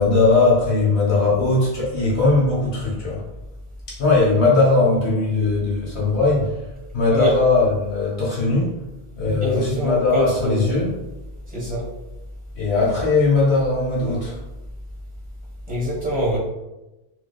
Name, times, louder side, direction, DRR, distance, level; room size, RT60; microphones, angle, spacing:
voice 1, 0.0-3.2 3.9-8.8 9.2-11.0 12.5-14.4, left 3 dB, 85° left, -6 dB, 1.3 m, -19 dB
voice 2, 9.4-10.8 11.5-11.9 15.7-16.4, equal, 10° right, -8 dB, 1.1 m, -24 dB
2.7 x 2.4 x 2.3 m, 1.0 s
omnidirectional pair, 1.1 m